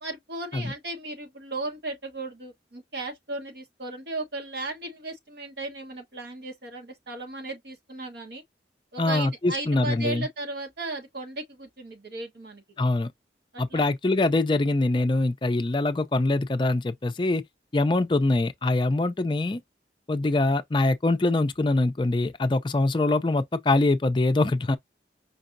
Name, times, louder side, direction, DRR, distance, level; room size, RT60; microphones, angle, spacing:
voice 1, 0.0-8.4 8.9-12.6 13.5-13.8, right 2 dB, 65° right, 1.2 m, -36 dB
voice 2, 9.0-10.3 12.8-13.1 13.6-17.4 17.7-19.6 20.1-24.8, left 2 dB, 25° left, 0.4 m, -24 dB
5.2 x 2.7 x 2.5 m
head